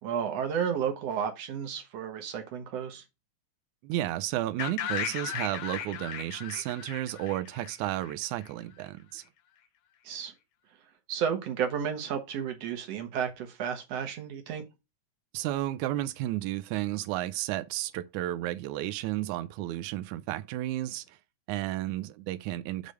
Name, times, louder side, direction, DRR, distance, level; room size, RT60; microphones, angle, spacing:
voice 1, 0.0-3.0 10.0-10.3 11.1-14.6, right 8 dB, 60° right, 2.0 m, -32 dB
voice 2, 3.8-9.2 15.3-21.2 21.5-22.9, right 14 dB, 80° right, 1.9 m, -32 dB
sound 1, 4.6-8.5, left 9 dB, 80° left, 2.4 m, -36 dB
6.7 x 3.4 x 6.1 m
omnidirectional pair, 3.7 m